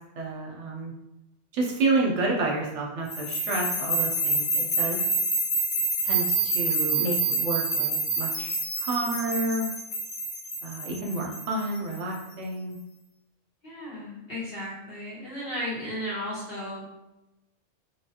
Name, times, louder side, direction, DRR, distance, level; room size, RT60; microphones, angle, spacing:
voice 1, 0.2-0.9 1.5-5.0 6.0-9.7 10.6-12.8, right 2 dB, 70° right, -2 dB, 0.9 m, -29 dB
sound 1, 3.1-12.2, right 2 dB, 65° left, 1.1 m, -27 dB
voice 2, 13.6-16.8, equal, 50° left, -8 dB, 1.4 m, -34 dB
3.2 x 2.3 x 2.7 m, 0.95 s
omnidirectional pair, 1.3 m